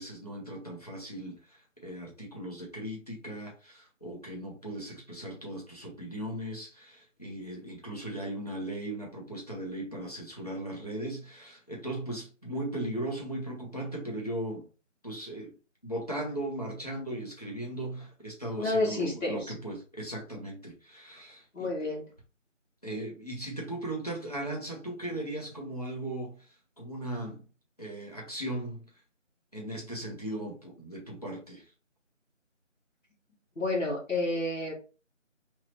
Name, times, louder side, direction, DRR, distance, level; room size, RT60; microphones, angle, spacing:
voice 1, 0.0-14.7 15.0-15.5 15.8-21.9 22.8-27.5 27.8-28.9 29.5-31.6, right 1 dB, 30° left, 0.8 m, -38 dB
voice 2, 18.6-19.4 21.5-22.0 33.6-34.7, left 2 dB, 80° left, 1.6 m, -29 dB
3.0 x 2.8 x 2.8 m
figure-of-eight pair, 175°, 38 cm